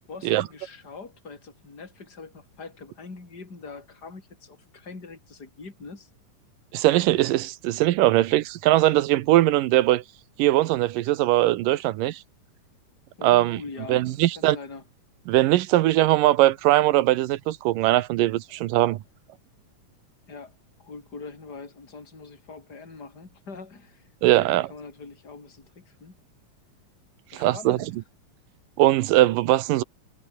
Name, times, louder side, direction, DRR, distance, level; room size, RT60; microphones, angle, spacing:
voice 1, 0.1-6.1 13.2-14.8 18.5-18.6 20.3-24.1 24.4-26.2 27.3-27.9, left 4 dB, 30° left, 5.0 m, -43 dB
voice 2, 6.7-10.0 10.4-12.2 13.2-13.6 13.9-14.6 15.3-19.0 24.2-24.7 27.3-27.8 28.8-29.8, right 15 dB, 80° right, 2.5 m, -20 dB
omnidirectional pair, 3.9 m